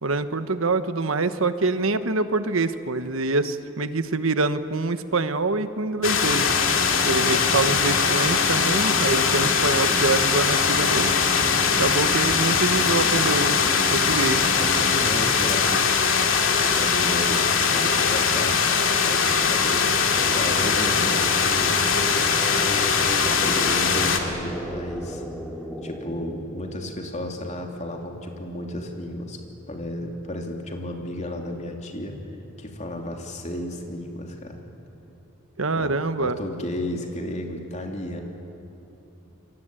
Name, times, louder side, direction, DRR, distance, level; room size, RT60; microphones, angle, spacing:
voice 1, 0.0-6.5 7.1-11.1 11.8-14.4 35.6-36.4, right 3 dB, 75° right, 11 dB, 1.2 m, -25 dB
sound 1, 6.0-24.2, left 6 dB, 70° left, 2.5 m, -21 dB
sound 2, 6.2-15.3, equal, 15° right, 1.6 m, -34 dB
voice 2, 7.3-7.6 14.1-18.7 19.0-21.9 22.6-22.9 23.2-25.2 25.8-32.2 32.6-34.6 35.7-38.2, left 1 dB, 35° left, 2 dB, 3.1 m, -33 dB
sound 3, 19.8-27.3, equal, 5° left, 2.6 m, -35 dB
28.5 x 23.5 x 9.0 m, 2.9 s
head